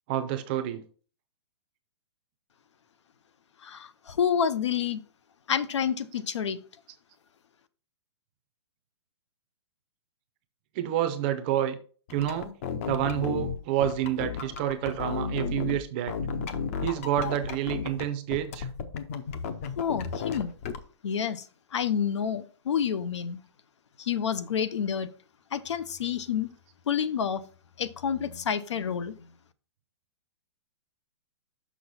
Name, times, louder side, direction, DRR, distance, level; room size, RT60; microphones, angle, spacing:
voice 1, 0.1-0.8 10.8-11.8 12.1-12.5 12.9-16.1 16.8-18.7, right 11 dB, 20° right, 9 dB, 0.5 m, -28 dB
voice 2, 3.6-5.0 5.5-6.6 19.8-20.5 21.0-21.4 21.7-23.4 24.0-25.1 25.5-26.5 26.9-27.4 27.8-29.1, left 8 dB, 80° left, 14 dB, 0.8 m, -28 dB
sound 1, 12.1-15.8 16.1-18.0 18.3-20.8, left 5 dB, 30° left, 0.6 m, -33 dB
6.3 x 5.7 x 4.1 m, 0.39 s
hypercardioid pair, 175°, 15 cm